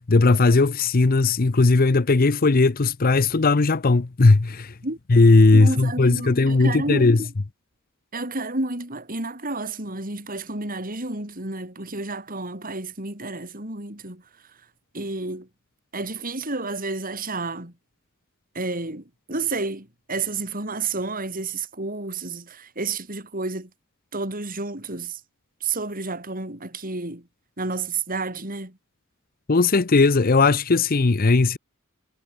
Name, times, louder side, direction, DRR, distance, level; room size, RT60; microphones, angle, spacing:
voice 1, 0.1-4.7 5.1-7.2 29.5-31.6, left 3 dB, 45° left, 0.7 m, -17 dB
voice 2, 5.5-7.3 8.1-14.2 14.9-15.5 15.9-17.7 18.5-23.7 24.1-25.2 25.6-27.3 27.6-28.8, right 3 dB, 40° right, 6.3 m, -30 dB
head